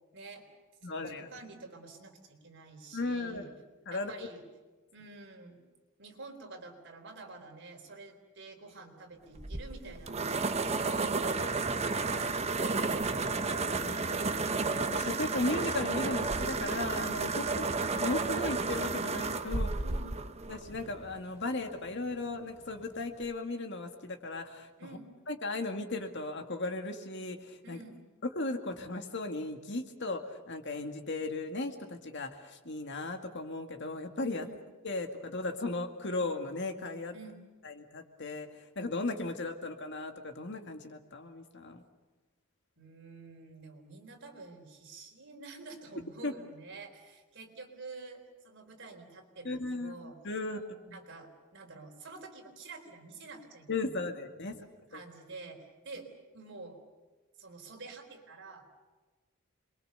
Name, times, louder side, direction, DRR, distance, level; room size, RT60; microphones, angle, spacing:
voice 1, 0.1-0.5 0.8-3.5 3.9-4.4 4.9-5.6 6.0-12.4 17.2-17.8 19.8-20.2 24.8-25.1 27.6-28.0 34.4-34.6 37.1-37.4 42.8-50.2 50.5-53.9 54.3-54.5 54.9-56.1 56.3-56.8 57.4-58.6, right 3 dB, 60° right, 3 dB, 4.0 m, -49 dB
voice 2, 0.8-1.3 2.9-3.4 3.9-4.1 13.0-14.2 14.9-17.4 18.0-19.8 20.5-25.0 25.3-27.8 28.2-34.5 34.8-37.1 37.6-41.8 46.2-46.3 49.4-51.0 53.7-54.7 54.9-55.0, left 2 dB, 55° left, 6 dB, 2.1 m, -36 dB
sound 1, 9.4-21.2, right 3 dB, 30° right, 1.0 m, -32 dB
27.0 x 22.5 x 6.8 m, 1.3 s
head